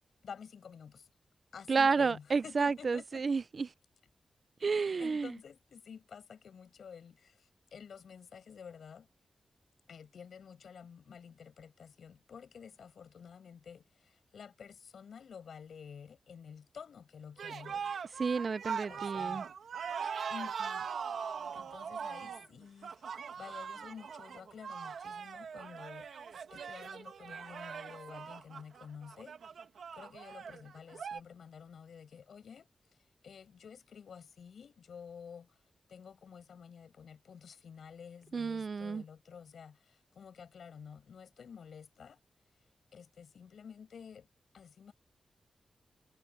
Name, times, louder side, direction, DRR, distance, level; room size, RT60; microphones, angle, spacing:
voice 1, 0.2-1.1 1.5-3.2 5.0-9.1 9.9-17.9 18.9-19.4 20.3-20.9 21.5-23.1 23.4-29.3 29.9-32.7 33.2-35.5 35.9-42.2 42.9-44.3 44.5-44.9, left 7 dB, 75° left, 6.9 m, -51 dB
voice 2, 1.7-3.7 4.6-5.3 18.2-19.4 38.3-39.0, right 4 dB, 40° right, 0.4 m, -31 dB
sound 1, 17.4-31.2, right 6 dB, 85° right, 1.7 m, -41 dB
wide cardioid pair, 170°, 0 cm